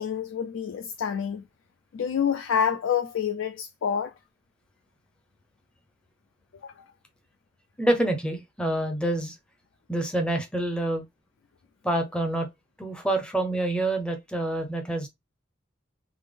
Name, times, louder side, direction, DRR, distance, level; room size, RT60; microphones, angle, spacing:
voice 1, 0.0-1.4 1.9-4.1 6.6-6.7, left 7 dB, 75° left, 0.4 m, -27 dB
voice 2, 7.8-9.3 9.9-11.0 11.8-12.5 12.8-15.1, right 1 dB, 5° left, 0.6 m, -27 dB
3.4 x 2.0 x 3.4 m
head